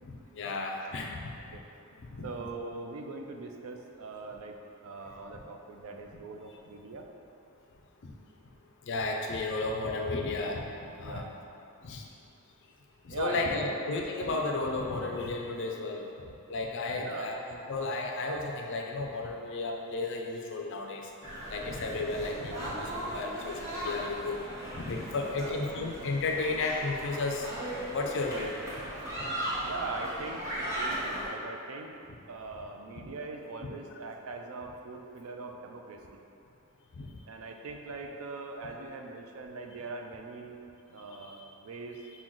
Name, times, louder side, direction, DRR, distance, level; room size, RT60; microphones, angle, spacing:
voice 1, 0.3-1.3 2.1-2.2 8.9-10.6 11.0-11.2 11.8-12.1 13.0-16.1 16.5-17.4 17.7-21.1 21.5-24.4 24.7-27.5 27.9-28.5 33.0-33.1 37.0-37.1 41.3-41.4, left 3 dB, 55° left, 1 dB, 0.4 m, -33 dB
voice 2, 2.2-4.6 4.8-7.1 11.0-11.4 13.1-13.7 16.9-17.3 25.3-25.6 29.6-31.9 32.3-36.2 37.3-40.6 40.9-42.0, right 3 dB, 65° right, 3 dB, 0.4 m, -41 dB
sound 1, 21.2-31.3, right 1 dB, 15° right, 1.0 m, -37 dB
6.0 x 2.3 x 3.7 m, 2.7 s
head